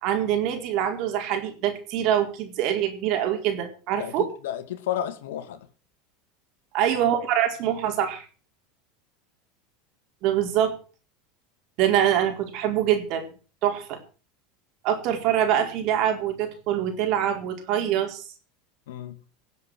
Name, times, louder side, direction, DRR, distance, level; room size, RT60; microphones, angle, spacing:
voice 1, 0.0-4.3 6.7-8.2 10.2-10.8 11.8-13.3 13.6-14.0 14.8-18.2, right 10 dB, 60° right, 5 dB, 4.3 m, -24 dB
voice 2, 4.0-5.7 18.9-19.2, left 11 dB, 85° left, 10 dB, 2.2 m, -32 dB
18.5 x 7.7 x 6.4 m, 0.38 s
supercardioid pair, 110°, 0 cm